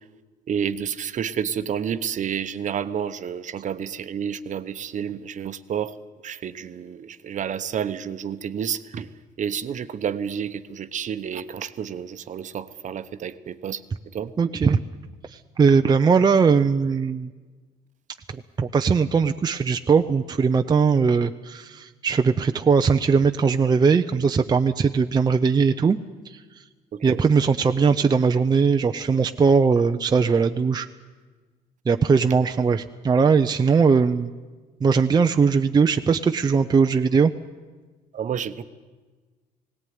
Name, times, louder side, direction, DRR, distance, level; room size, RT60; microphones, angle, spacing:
voice 1, 0.5-5.9 6.2-9.1 9.4-13.8 14.1-14.3 26.9-27.2 38.1-38.6, right 8 dB, 45° right, 11 dB, 1.0 m, -30 dB
voice 2, 14.4-14.8 15.2-17.3 18.3-26.0 26.2-26.7 27.0-30.9 31.9-34.3 34.8-37.3, right 5 dB, 25° right, 6 dB, 0.6 m, -20 dB
18.0 x 18.0 x 9.5 m, 1.3 s
cardioid pair, 110°, 17 cm